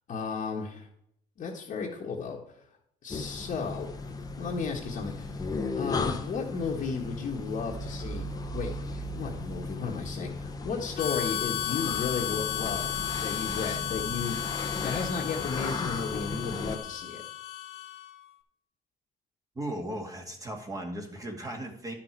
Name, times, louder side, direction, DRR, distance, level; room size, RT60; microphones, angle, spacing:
voice 1, 0.1-0.9 1.4-2.6 3.0-3.9 4.4-8.3 8.5-12.9 13.2-14.5 14.8-17.2, left 5 dB, 50° left, -4 dB, 1.5 m, -34 dB
sound 1, 3.1-16.8, left 3 dB, 20° left, 1.0 m, -36 dB
Harmonica, 11.0-18.3, left 11 dB, 70° left, 1.0 m, -34 dB
voice 2, 19.6-22.0, right 1 dB, 20° right, 2 dB, 2.0 m, -36 dB
11.0 x 5.9 x 4.6 m, 0.73 s
cardioid pair, 110°, 17 cm